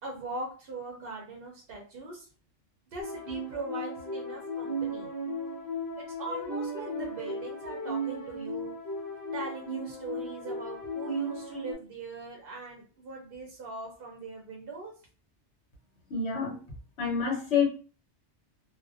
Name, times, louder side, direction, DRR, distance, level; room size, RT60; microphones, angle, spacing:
voice 1, 0.0-2.3 2.9-5.1 6.0-8.7 9.3-14.9, right 2 dB, 60° right, -1 dB, 0.7 m, -40 dB
sound 1, 3.0-11.7, right 1 dB, 20° left, 0.8 m, -36 dB
voice 2, 16.1-16.6 17.0-17.6, left 6 dB, 65° left, -1 dB, 1.1 m, -27 dB
2.5 x 2.1 x 2.4 m, 0.37 s
omnidirectional pair, 1.2 m